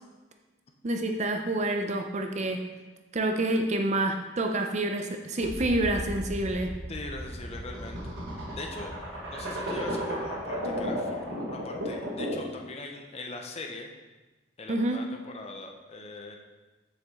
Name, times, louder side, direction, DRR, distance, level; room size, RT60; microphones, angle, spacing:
voice 1, 0.8-2.6 3.1-6.7 14.7-15.0, right 1 dB, 35° right, 4 dB, 0.6 m, -28 dB
sound 1, 5.4-12.6, equal, 80° right, 1.5 m, -34 dB
voice 2, 6.9-8.2 8.5-13.9 14.6-16.4, left 2 dB, 30° left, 2 dB, 0.6 m, -41 dB
7.0 x 6.7 x 3.6 m, 1.2 s
head